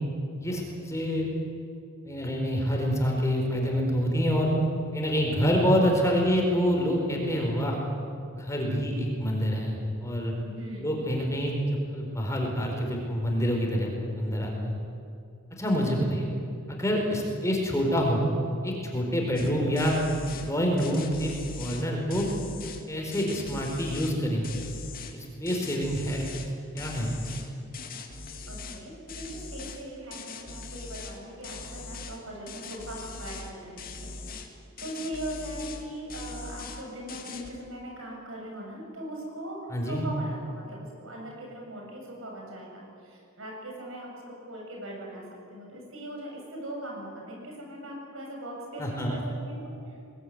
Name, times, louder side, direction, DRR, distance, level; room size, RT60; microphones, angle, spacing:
voice 1, 0.4-1.3 2.0-4.5 4.9-7.8 8.3-10.3 10.8-11.5 11.9-14.7 15.6-16.3 16.7-18.2 18.6-20.0 20.5-22.3 22.9-24.4 25.1-26.2 26.7-27.2 39.7-40.1 48.8-49.2, equal, 15° left, 0 dB, 4.5 m, -27 dB
voice 2, 10.4-10.9 28.5-34.4 34.8-50.0, right 1 dB, 75° right, -1 dB, 7.7 m, -40 dB
sound 1, 19.4-19.5 19.8-20.5 20.8-22.8 23.1-24.2 24.4-25.1 25.5-26.5 26.8-28.8 29.1-29.8 30.1-31.2 31.4-32.2 32.5-33.5 33.8-34.5 34.8-35.8 36.1-36.8 37.1-37.5, left 4 dB, 45° left, 2.4 m, -41 dB
24.0 x 19.5 x 9.7 m, 2.5 s
head